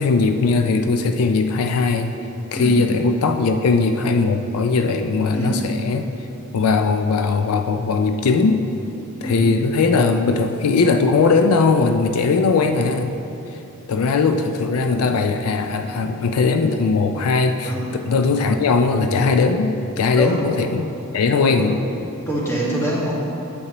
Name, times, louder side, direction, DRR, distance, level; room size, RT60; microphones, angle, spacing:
voice 1, 0.0-2.1 2.5-6.1 6.5-8.6 9.2-13.1 13.9-21.8, left 4 dB, 85° left, 7 dB, 0.4 m, -19 dB
voice 2, 5.3-5.6 9.2-9.4 17.6-17.8 20.1-20.4 21.6-21.7 22.3-23.1, right 1 dB, 10° left, -6 dB, 1.6 m, -24 dB
9.5 x 8.0 x 2.9 m, 2.9 s
head